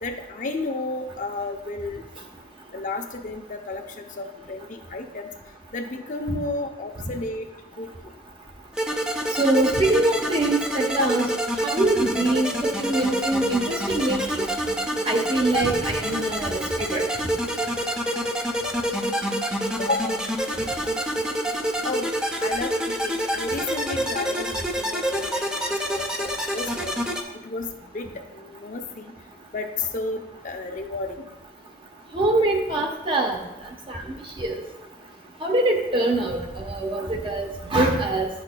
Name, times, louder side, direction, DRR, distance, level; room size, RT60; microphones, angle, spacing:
voice 1, 0.0-2.0 2.7-5.3 5.7-7.5 7.8-8.1 11.0-11.1 19.8-20.3 21.8-22.1 22.4-27.0 27.4-29.1 29.5-31.3, left 2 dB, 45° left, 4 dB, 0.6 m, -32 dB
sound 1, 8.7-27.2, equal, 5° right, 0.6 m, -27 dB
voice 2, 9.3-11.3 11.6-14.4 15.1-17.0 32.1-33.4 33.9-34.0 34.4-34.6 35.4-38.3, right 2 dB, 30° right, 2 dB, 0.9 m, -23 dB
10.5 x 6.4 x 2.2 m, 0.94 s
head